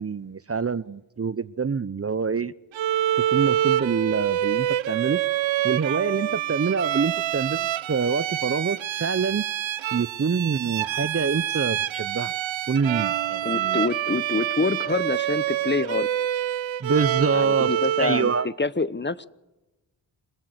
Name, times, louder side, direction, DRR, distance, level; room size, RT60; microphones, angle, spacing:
voice 1, 0.0-2.5 3.3-5.2 5.6-9.4 9.9-12.3 12.7-13.8 16.8-17.7 18.0-18.5, right 5 dB, 30° right, 0.7 m, -26 dB
Bowed string instrument, 2.7-18.5, right 12 dB, 85° right, 0.8 m, -26 dB
voice 2, 13.4-16.1 17.3-19.3, left 3 dB, 25° left, 1.0 m, -26 dB
26.0 x 16.0 x 8.0 m
supercardioid pair, 40°, 45 cm